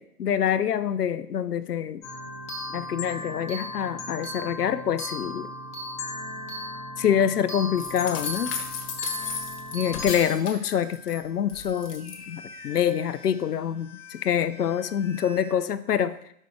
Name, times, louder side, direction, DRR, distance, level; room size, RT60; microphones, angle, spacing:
voice 1, 0.0-2.0 2.7-5.5 7.0-8.5 9.7-16.2, left 9 dB, 80° left, 13 dB, 0.7 m, -26 dB
sound 1, 2.0-15.5, left 1 dB, 15° left, 1.2 m, -38 dB
sound 2, 7.8-11.2 11.5-12.2, left 5 dB, 40° left, 1.2 m, -35 dB
5.4 x 5.1 x 5.9 m, 0.72 s
hypercardioid pair, 135°, 46 cm